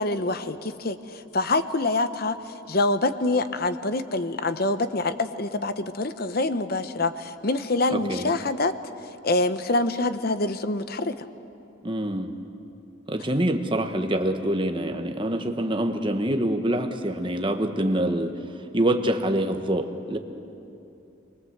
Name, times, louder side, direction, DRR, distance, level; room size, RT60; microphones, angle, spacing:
voice 1, 0.0-8.7 9.2-11.1, left 2 dB, 45° left, 11 dB, 0.8 m, -26 dB
voice 2, 7.9-8.3 11.8-12.3 13.1-18.3 18.7-20.2, right 1 dB, 25° right, 5 dB, 1.3 m, -25 dB
24.5 x 22.5 x 8.0 m, 2.8 s
head